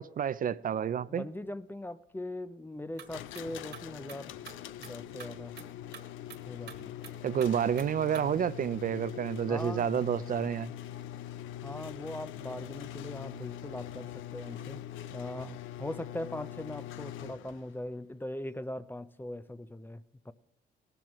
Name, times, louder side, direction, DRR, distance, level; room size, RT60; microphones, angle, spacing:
voice 1, 0.0-1.3 7.2-10.7, right 8 dB, 45° right, 0.5 m, -30 dB
voice 2, 1.1-4.3 4.8-5.5 6.5-6.9 9.5-9.9 11.6-14.8 15.1-20.3, left 1 dB, 10° left, 0.6 m, -40 dB
sound 1, 2.8-8.3, right 8 dB, 60° right, 1.8 m, -50 dB
sound 2, 3.1-17.8, left 11 dB, 80° left, 0.6 m, -43 dB
18.0 x 13.5 x 3.1 m
cardioid pair, 90°, 20 cm